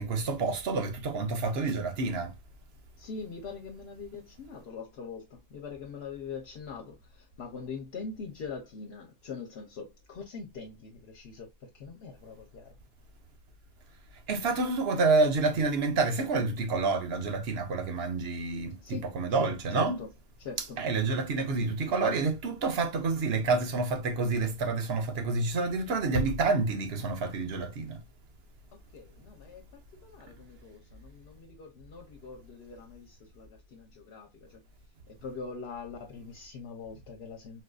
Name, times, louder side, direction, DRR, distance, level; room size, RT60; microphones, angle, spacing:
voice 1, 0.0-2.3 14.3-19.9 20.8-28.0, right 3 dB, 75° right, 1.0 m, -28 dB
voice 2, 3.0-12.7 18.8-20.1 20.4-20.8 28.9-34.6 35.1-37.6, left 5 dB, 75° left, 1.0 m, -43 dB
4.1 x 2.5 x 2.2 m
omnidirectional pair, 1.1 m